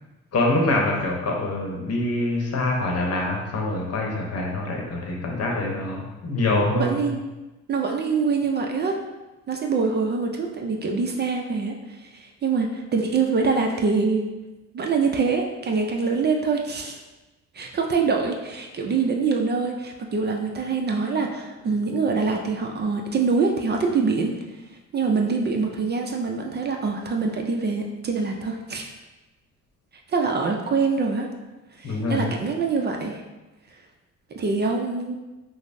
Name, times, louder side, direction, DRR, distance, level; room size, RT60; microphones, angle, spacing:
voice 1, 0.3-6.9 31.8-32.3, left 2 dB, 55° left, 0 dB, 0.8 m, -25 dB
voice 2, 6.7-7.2 7.7-9.0 9.5-14.3 14.7-17.0 17.5-24.3 24.9-28.9 30.1-31.3 31.8-33.2 34.4-35.1, right 4 dB, 35° right, 2 dB, 0.4 m, -24 dB
5.2 x 2.0 x 2.5 m, 1.1 s
cardioid pair, 90°, 30 cm